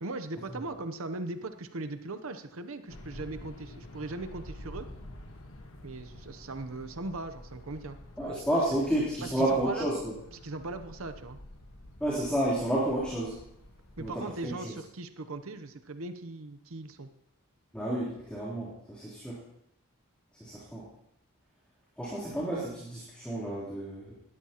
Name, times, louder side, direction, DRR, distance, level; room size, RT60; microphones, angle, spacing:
voice 1, 0.0-4.9 5.8-8.5 9.2-9.9 10.4-11.4 14.0-17.1, right 2 dB, 70° right, 9 dB, 0.8 m, -39 dB
sound 1, 2.9-14.1, left 1 dB, 65° left, 1.5 m, -49 dB
voice 2, 8.2-10.1 12.0-13.4 14.0-14.7 17.7-19.4 20.4-20.8 22.0-24.1, right 1 dB, 5° left, -9 dB, 3.4 m, -31 dB
19.5 x 13.5 x 3.0 m, 0.78 s
head